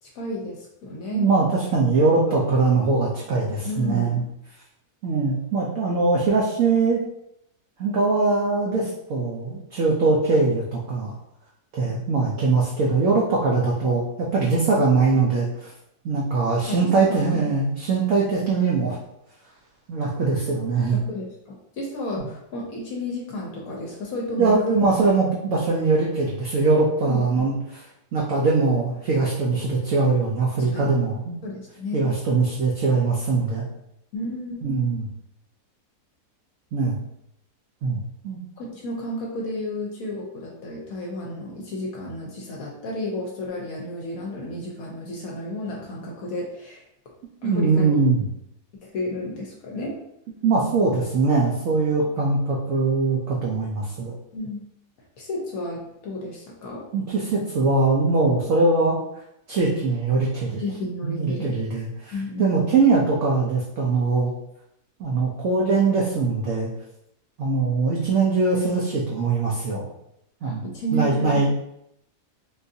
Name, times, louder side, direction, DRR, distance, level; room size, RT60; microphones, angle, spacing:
voice 1, 0.0-1.3 2.3-2.4 2.8-2.9 3.6-4.3 16.6-17.4 20.9-24.6 27.0-27.5 30.7-31.0 31.4-32.1 34.1-34.7 38.6-46.8 47.4-48.0 48.9-50.0 54.3-54.7 55.2-56.8 60.6-61.6 62.1-62.5 70.4-71.5, left 1 dB, 70° left, -1 dB, 1.1 m, -32 dB
voice 2, 1.1-4.2 5.0-7.0 7.8-11.1 11.7-15.7 16.0-19.0 19.9-21.0 24.4-27.8 28.1-31.4 31.9-33.7 34.6-35.1 36.7-37.0 37.8-38.4 47.4-48.3 50.4-54.1 56.9-59.0 59.5-60.6 61.0-62.1 62.4-64.3 65.0-66.7 67.4-69.9 70.4-70.7 70.9-71.5, right 3 dB, 65° right, -4 dB, 0.9 m, -22 dB
3.8 x 2.6 x 2.6 m, 0.78 s
omnidirectional pair, 1.7 m